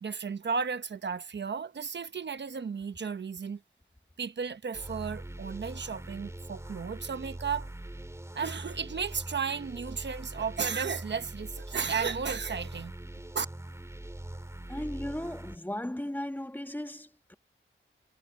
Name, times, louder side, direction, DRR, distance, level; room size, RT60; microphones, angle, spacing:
voice 1, 0.0-3.6 4.2-7.7 8.3-12.9 13.3-13.5, right 6 dB, 60° right, 1.0 m, -34 dB
sound 1, 4.7-15.6, right 1 dB, 15° right, 3.0 m, -42 dB
voice 2, 14.7-17.3, left 1 dB, 10° left, 1.3 m, -36 dB
wide cardioid pair, 115°, 21 cm